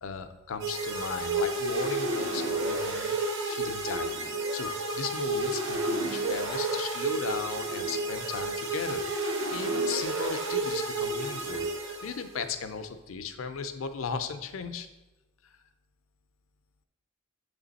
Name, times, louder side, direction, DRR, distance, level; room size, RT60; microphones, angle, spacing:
voice 1, 0.0-3.2 3.4-9.2 9.5-14.9 15.4-15.6, left 5 dB, 80° left, 9 dB, 0.5 m, -37 dB
sound 1, 0.6-12.4, right 2 dB, 65° right, 0.9 m, -31 dB
7.3 x 3.3 x 4.0 m, 1.0 s
head